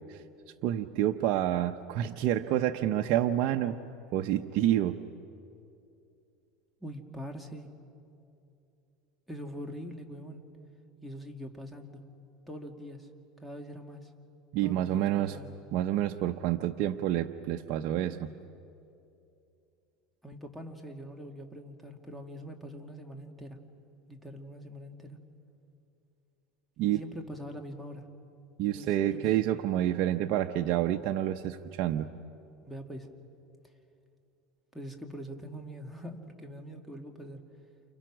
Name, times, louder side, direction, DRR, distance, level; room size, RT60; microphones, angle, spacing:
voice 1, 0.6-3.8 4.1-5.0 14.5-15.4 15.7-18.3 26.8-27.0 28.6-32.1, right 12 dB, 60° right, 5 dB, 0.8 m, -28 dB
voice 2, 6.8-7.7 9.3-10.4 11.0-12.0 12.5-13.1 13.4-14.1 14.6-15.5 20.2-23.6 24.1-25.2 26.8-28.1 28.7-29.3 32.6-33.1 34.7-37.4, equal, 5° left, 3 dB, 2.3 m, -43 dB
29.0 x 29.0 x 6.2 m, 2.6 s
supercardioid pair, 125°, 0 cm